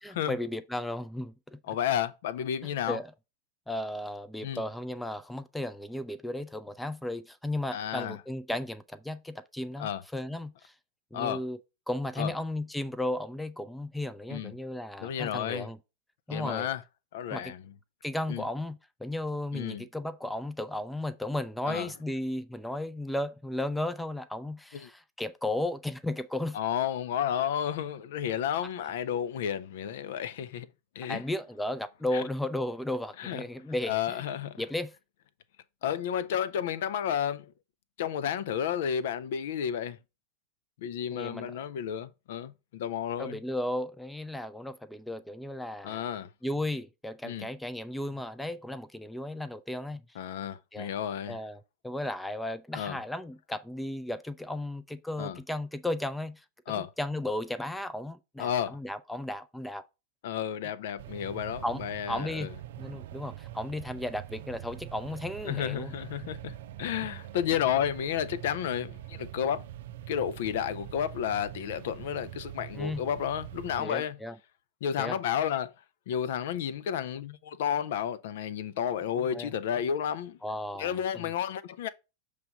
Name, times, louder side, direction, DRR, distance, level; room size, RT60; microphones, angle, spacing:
voice 1, 0.0-1.6 2.9-3.1 3.7-10.7 11.1-11.6 11.9-15.8 16.3-16.7 17.3-17.5 18.0-26.6 31.1-34.2 34.6-34.9 41.1-41.5 43.2-46.0 46.4-50.0 50.7-50.9 51.3-56.4 56.7-59.8 61.6-62.5 62.8-65.9 72.7-73.0 73.8-74.4 75.0-75.2 79.3-79.5 80.4-81.2, left 1 dB, 5° left, 0.5 m, -35 dB
voice 2, 1.7-3.0 4.4-4.6 7.7-8.2 9.8-10.0 11.1-11.4 12.2-12.3 14.3-14.5 15.0-15.7 16.3-16.8 17.1-17.6 18.3-18.4 19.5-19.8 21.7-21.9 24.8-24.9 26.5-30.7 31.0-31.2 32.1-32.2 33.2-33.4 33.9-34.6 35.8-37.5 38.0-40.0 40.8-43.4 45.8-46.3 47.2-47.5 50.2-51.4 52.7-53.0 55.2-55.4 56.7-56.9 58.4-58.8 60.2-62.5 65.4-69.6 70.1-74.2 74.8-75.7 76.1-80.4 80.8-81.9, left 9 dB, 55° left, 0.5 m, -32 dB
sound 1, 61.0-73.8, right 13 dB, 55° right, 0.4 m, -44 dB
6.8 x 3.3 x 5.1 m
figure-of-eight pair, 90°, 0 cm